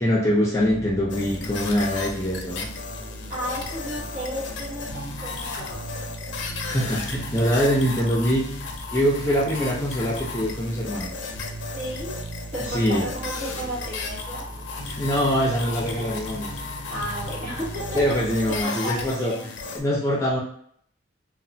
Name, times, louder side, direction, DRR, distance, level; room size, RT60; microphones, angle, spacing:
voice 1, 0.0-2.7 6.6-8.6 8.9-11.1 12.7-13.1 15.0-16.5 17.9-19.3 19.7-20.4, equal, 15° left, -4 dB, 0.5 m, -23 dB
sound 1, 0.5-18.6, right 1 dB, 25° right, 0.7 m, -39 dB
sound 2, 1.1-19.8, left 4 dB, 70° left, 0.4 m, -35 dB
voice 2, 3.3-6.1 11.8-12.2 12.5-14.5 16.9-18.2 18.5-19.5, equal, 45° right, -6 dB, 1.2 m, -33 dB
2.9 x 2.1 x 2.7 m, 0.65 s
head